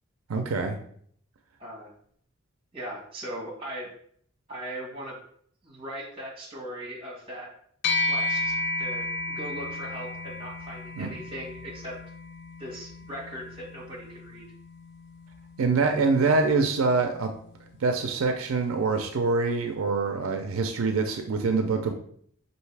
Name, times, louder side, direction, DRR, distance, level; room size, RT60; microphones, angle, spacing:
voice 1, 0.3-0.8 11.0-11.1 15.6-17.3 17.8-21.9, right 4 dB, 85° right, 6 dB, 0.4 m, -25 dB
voice 2, 1.6-1.9 2.7-3.9 4.5-5.2 5.6-7.5 8.1-12.0 12.6-14.4, right 1 dB, 25° right, -2 dB, 1.3 m, -39 dB
sound 1, 7.8-17.5, left 2 dB, 55° left, 0.3 m, -34 dB
5.5 x 2.7 x 3.3 m, 0.63 s
head